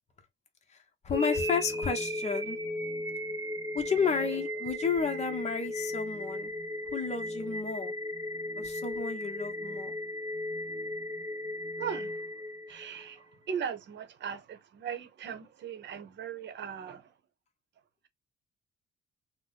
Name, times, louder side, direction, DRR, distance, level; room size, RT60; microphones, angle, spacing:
voice 1, 0.7-2.6 3.7-6.5 6.9-7.9 8.6-10.0, left 5 dB, 35° left, 0.8 m, -32 dB
sound 1, 1.1-13.1, left 1 dB, 15° right, 0.7 m, -36 dB
voice 2, 11.8-12.2 12.7-17.0, right 7 dB, 65° right, 0.8 m, -38 dB
2.7 x 2.1 x 3.9 m
cardioid pair, 90°, 20 cm